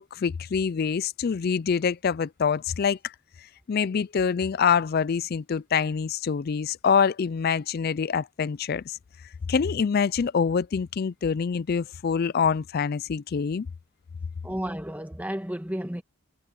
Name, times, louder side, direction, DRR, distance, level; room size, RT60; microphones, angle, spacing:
voice 1, 0.0-3.1 3.7-9.0 9.5-13.7, left 6 dB, 45° left, 0.3 m, -25 dB
voice 2, 14.4-16.0, equal, 5° right, 1.3 m, -32 dB
head